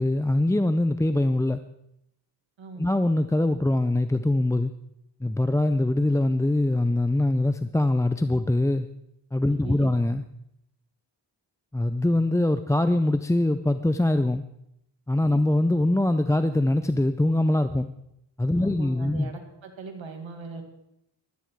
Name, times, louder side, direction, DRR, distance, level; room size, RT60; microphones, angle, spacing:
voice 1, 0.0-1.6 2.8-4.7 5.2-8.9 9.3-10.2 11.7-14.4 15.1-17.9 18.4-19.3, left 1 dB, 5° left, 10 dB, 0.4 m, -23 dB
voice 2, 9.5-9.9 18.5-20.7, right 4 dB, 85° right, 4 dB, 2.2 m, -40 dB
16.5 x 12.5 x 4.6 m, 0.80 s
wide cardioid pair, 80°, 45 cm